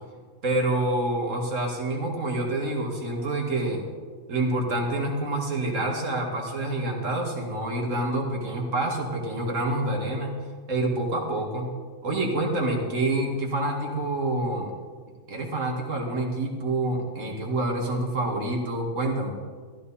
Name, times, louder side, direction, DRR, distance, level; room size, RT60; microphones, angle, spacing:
voice 1, 0.4-3.8 4.3-10.3 10.7-11.7 12.0-14.7 15.3-19.3, right 2 dB, 75° right, 1 dB, 2.4 m, -27 dB
14.5 x 13.5 x 4.3 m, 1.5 s
omnidirectional pair, 1.3 m